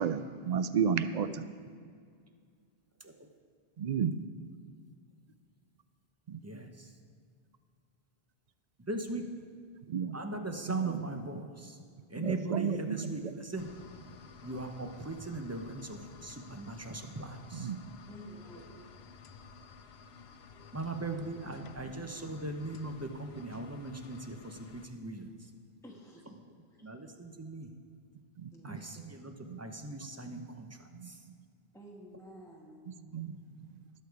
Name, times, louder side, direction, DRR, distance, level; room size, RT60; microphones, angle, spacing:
voice 1, 0.0-1.4 3.8-4.1 6.3-6.4 9.9-10.1 10.7-11.1 12.2-13.1 17.5-17.8 28.4-29.1 29.5-29.6 30.3-30.5 30.9-31.3 33.1-33.8, right 7 dB, 55° right, 12 dB, 0.5 m, -33 dB
voice 2, 6.4-6.9 8.8-9.3 10.1-11.8 12.1-13.7 14.4-17.7 18.7-18.8 20.7-25.3 26.3-26.5 26.8-27.7 28.6-29.3 29.6-31.2 32.9-33.2, right 2 dB, 15° right, 5 dB, 0.8 m, -40 dB
sound 1, 13.6-24.9, left 5 dB, 80° left, 1.0 m, -53 dB
voice 3, 18.1-18.6 25.8-26.4 26.7-26.9 28.5-29.0 31.7-32.9, equal, 5° left, -3 dB, 1.3 m, -51 dB
19.5 x 6.8 x 4.8 m, 2.2 s
omnidirectional pair, 1.0 m